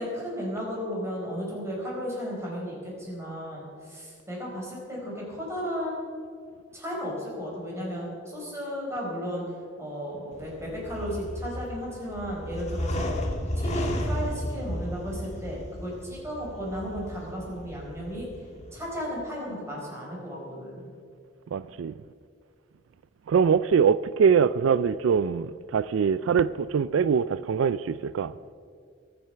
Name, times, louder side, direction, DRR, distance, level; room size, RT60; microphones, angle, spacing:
voice 1, 0.0-6.0 6.7-9.4 9.8-13.1 13.5-18.3 18.7-20.9, equal, 15° right, 4.7 m, -34 dB
sound 1, 10.3-18.8, left 1 dB, 35° left, 1.6 m, -34 dB
voice 2, 21.5-21.9 23.3-28.3, right 6 dB, 90° right, 0.4 m, -23 dB
23.0 x 7.7 x 5.8 m
head